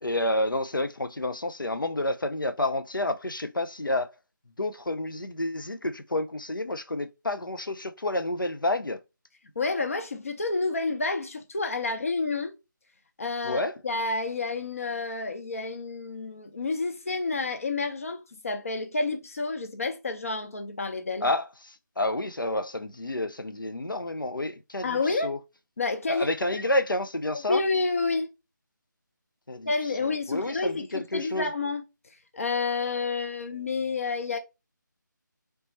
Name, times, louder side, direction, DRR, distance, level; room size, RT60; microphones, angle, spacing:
voice 1, 0.0-4.1 4.6-9.0 13.4-13.8 21.2-25.4 26.1-27.6 29.5-29.7 30.0-31.5, left 1 dB, 90° left, 0.5 m, -29 dB
voice 2, 9.6-12.5 13.2-21.3 24.8-25.3 25.8-26.3 27.5-28.3 29.7-31.8 32.3-34.4, left 3 dB, 45° left, 0.7 m, -29 dB
3.3 x 3.0 x 4.2 m
figure-of-eight pair, 160°, 11 cm